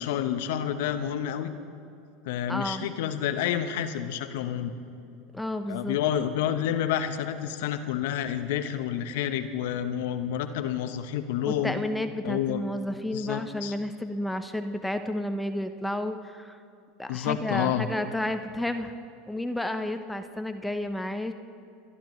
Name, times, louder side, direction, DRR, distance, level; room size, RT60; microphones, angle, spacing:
voice 1, 0.0-1.5 2.2-4.7 5.7-11.7 12.2-12.6 13.1-13.7 17.1-17.9, left 10 dB, 70° left, 9 dB, 0.9 m, -29 dB
voice 2, 2.5-2.9 5.3-6.0 11.5-16.6 17.0-18.9 19.3-21.3, left 1 dB, 5° left, 8 dB, 0.8 m, -31 dB
29.0 x 11.5 x 3.2 m, 2.6 s
hypercardioid pair, 85°, 0 cm